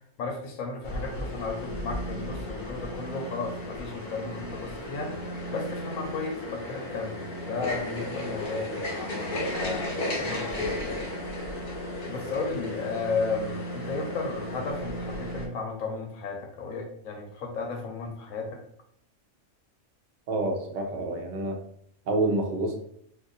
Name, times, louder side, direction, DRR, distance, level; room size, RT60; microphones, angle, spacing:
voice 1, 0.2-5.2 5.5-11.0 12.1-18.6, left 4 dB, 80° left, 2 dB, 1.1 m, -34 dB
sound 1, 0.8-15.5, left 1 dB, 45° left, 0.8 m, -34 dB
voice 2, 20.3-21.6 22.1-22.8, right 2 dB, 50° right, 2 dB, 0.6 m, -28 dB
2.6 x 2.5 x 3.9 m, 0.68 s
omnidirectional pair, 1.4 m